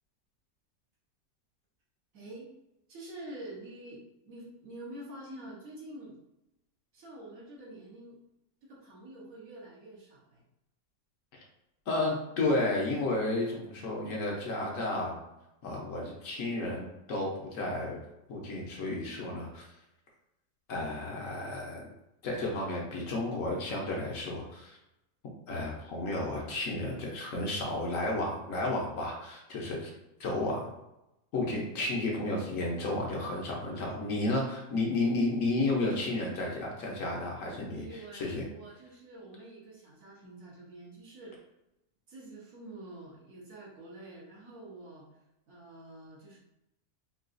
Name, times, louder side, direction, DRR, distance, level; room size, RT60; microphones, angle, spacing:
voice 1, 2.1-2.5 2.9-6.2 6.9-8.2 8.6-10.4 37.7-41.4 42.1-45.1 45.5-46.4, right 1 dB, 65° right, -5 dB, 1.3 m, -47 dB
voice 2, 11.9-15.2 15.6-18.0 18.3-19.7 20.7-21.9 22.2-24.8 25.5-29.9 30.2-30.7 31.3-37.9 38.1-38.4, left 2 dB, 65° left, -2 dB, 1.1 m, -32 dB
3.8 x 2.3 x 2.5 m, 0.89 s
omnidirectional pair, 1.6 m